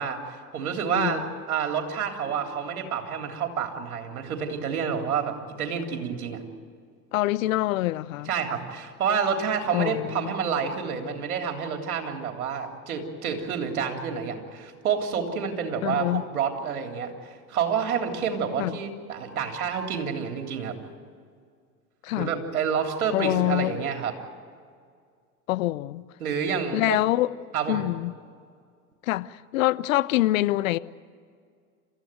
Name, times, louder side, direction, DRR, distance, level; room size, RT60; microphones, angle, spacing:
voice 1, 0.0-6.4 8.3-20.8 22.2-24.1 26.2-27.0 27.5-27.8, right 6 dB, 75° right, 3.5 m, -29 dB
voice 2, 0.9-1.3 7.1-8.3 9.7-10.3 15.8-16.2 18.6-18.8 22.0-22.3 23.1-23.9 25.5-26.0 26.7-27.3 27.7-28.1 29.0-30.8, left 16 dB, 65° left, 0.8 m, -25 dB
29.0 x 15.0 x 9.1 m
hypercardioid pair, 85°, 44 cm